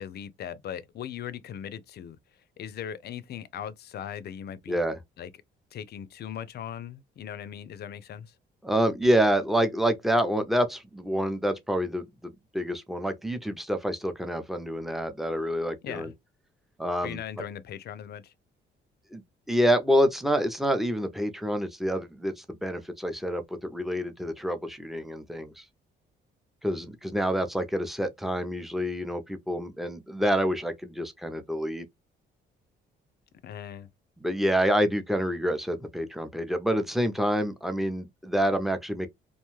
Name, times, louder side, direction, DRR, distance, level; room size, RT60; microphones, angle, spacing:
voice 1, 0.0-2.2 2.6-4.8 5.2-5.3 5.7-8.3 15.8-16.1 17.0-18.3 33.4-33.9, left 9 dB, 55° left, 0.4 m, -39 dB
voice 2, 4.7-5.0 8.6-16.1 16.8-17.2 19.1-25.6 26.6-31.9 34.2-39.1, equal, ahead, 0.5 m, -27 dB
2.5 x 2.2 x 3.0 m
cardioid pair, 90°, 20 cm